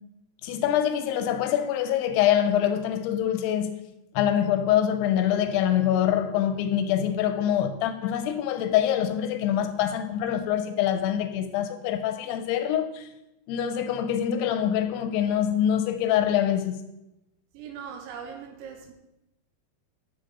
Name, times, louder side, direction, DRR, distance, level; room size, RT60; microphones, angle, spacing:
voice 1, 0.4-3.8 4.1-13.1 13.5-16.8, left 10 dB, 85° left, 2.4 m, -25 dB
voice 2, 17.5-18.9, right 7 dB, 85° right, 3.3 m, -40 dB
10.5 x 7.1 x 4.1 m
omnidirectional pair, 5.2 m